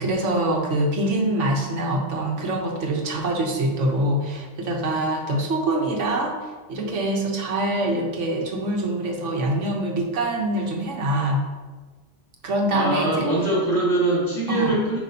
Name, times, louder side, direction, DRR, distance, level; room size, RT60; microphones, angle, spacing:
voice 1, 0.0-6.4 6.7-11.4 12.4-13.3 14.5-14.8, right 1 dB, 70° right, 1 dB, 1.4 m, -24 dB
voice 2, 12.7-15.0, right 1 dB, 80° left, -6 dB, 2.6 m, -22 dB
9.3 x 5.3 x 2.8 m, 1.3 s
omnidirectional pair, 1.3 m